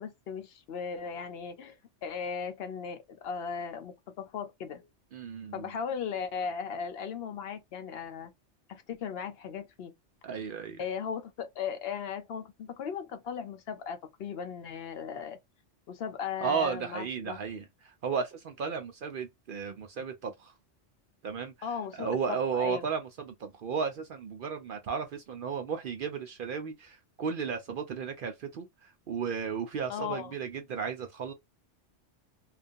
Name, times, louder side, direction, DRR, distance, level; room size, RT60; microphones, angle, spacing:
voice 1, 0.0-4.9 5.5-8.3 8.7-9.9 10.8-15.4 15.9-17.4 21.6-22.9 29.9-30.3, left 6 dB, 65° left, 0.7 m, -37 dB
voice 2, 5.1-5.7 10.2-10.8 16.4-20.5 21.2-21.5 22.0-31.3, right 6 dB, 60° right, 0.6 m, -34 dB
2.4 x 2.2 x 2.5 m
omnidirectional pair, 1.2 m